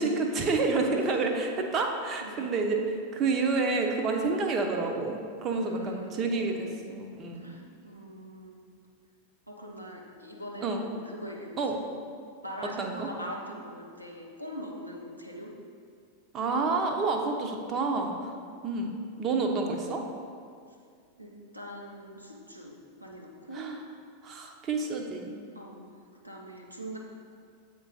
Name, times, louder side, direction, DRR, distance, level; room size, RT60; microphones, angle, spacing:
voice 1, 0.0-2.8 3.1-7.5 10.6-10.8 11.6-11.8 12.6-13.1 16.3-18.3 18.6-20.0 23.5-23.8 24.2-25.3, right 3 dB, 30° right, 3 dB, 0.7 m, -29 dB
voice 2, 1.0-1.3 2.2-2.5 5.5-6.7 7.3-8.6 9.5-11.6 12.4-15.5 18.3-18.4 21.2-23.6 25.5-25.9 26.2-27.0, equal, 90° right, -2 dB, 0.9 m, -42 dB
7.9 x 3.8 x 4.0 m, 2.2 s
figure-of-eight pair, 90°, 0 cm